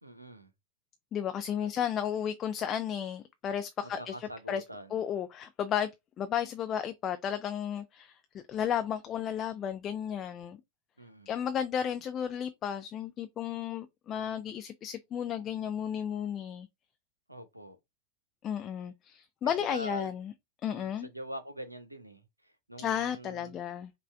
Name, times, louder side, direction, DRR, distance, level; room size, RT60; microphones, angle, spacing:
voice 1, 0.0-0.5 1.6-1.7 3.8-5.0 11.0-11.3 17.3-17.8 19.4-20.1 20.6-23.5, equal, 85° right, 0.8 m, -44 dB
voice 2, 1.1-4.6 4.9-5.9 6.2-8.2 8.5-10.6 11.3-16.7 18.4-20.3 20.6-21.1 22.8-23.9, left 9 dB, 30° left, 0.4 m, -33 dB
5.5 x 2.5 x 3.3 m
figure-of-eight pair, 90°, 0 cm